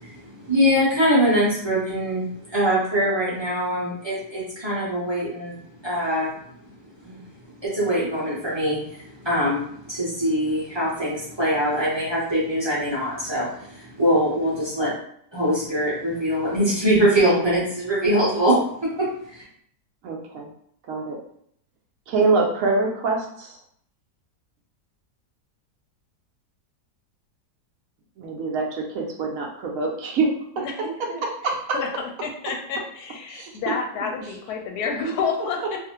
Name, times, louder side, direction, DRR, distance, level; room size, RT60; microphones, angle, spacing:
voice 1, 0.0-6.3 7.0-7.2 7.6-14.9 15.3-19.4, equal, 35° right, -8 dB, 0.4 m, -23 dB
voice 2, 20.0-20.5 20.8-21.2 22.1-23.6 28.2-30.6 31.2-31.8 33.3-34.0, right 3 dB, 70° right, 0 dB, 0.8 m, -25 dB
voice 3, 30.6-31.2 31.7-31.9 32.2-35.8, left 5 dB, 70° left, 2 dB, 1.0 m, -29 dB
2.6 x 2.4 x 2.8 m, 0.67 s
omnidirectional pair, 1.8 m